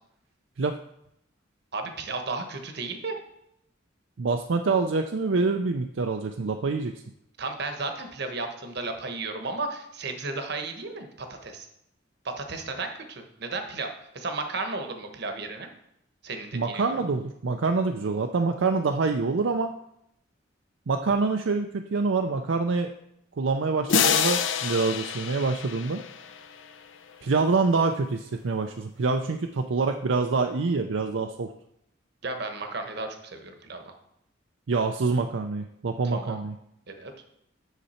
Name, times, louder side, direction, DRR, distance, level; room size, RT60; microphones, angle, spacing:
voice 1, 1.7-3.2 7.4-11.7 12.2-15.7 16.2-17.0 32.2-33.8 36.0-36.4 36.9-37.1, right 3 dB, 60° right, 6 dB, 1.2 m, -34 dB
voice 2, 4.2-7.0 16.5-19.7 20.9-22.9 23.4-26.0 27.2-31.5 34.7-36.5, right 4 dB, 80° right, 5 dB, 0.5 m, -26 dB
sound 1, 23.9-26.7, left 7 dB, 85° left, 0.7 m, -27 dB
8.1 x 6.8 x 4.3 m, 0.77 s
head